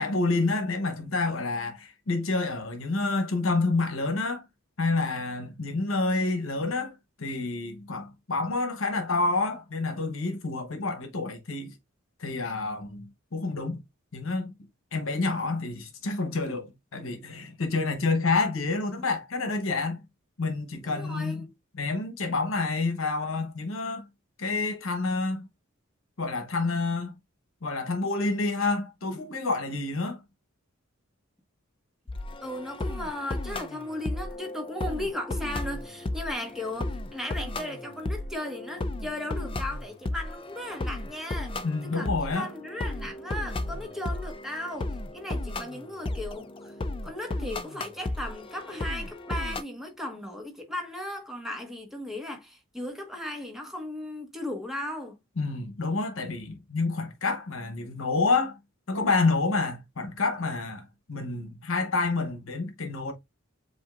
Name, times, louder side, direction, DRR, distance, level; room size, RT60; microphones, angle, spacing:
voice 1, 0.0-4.4 4.8-11.7 12.2-13.8 14.1-14.5 14.9-20.0 20.4-21.5 21.7-24.1 24.4-25.5 26.2-27.1 27.6-30.2 41.6-42.5 55.4-58.6 58.9-63.1, left 3 dB, 75° left, 1.0 m, -28 dB
voice 2, 20.8-21.5 32.4-41.5 41.8-44.9 45.1-46.7 47.0-55.1, left 1 dB, ahead, 1.3 m, -36 dB
sound 1, 32.1-49.6, left 2 dB, 25° left, 0.4 m, -34 dB
7.8 x 2.7 x 2.5 m
head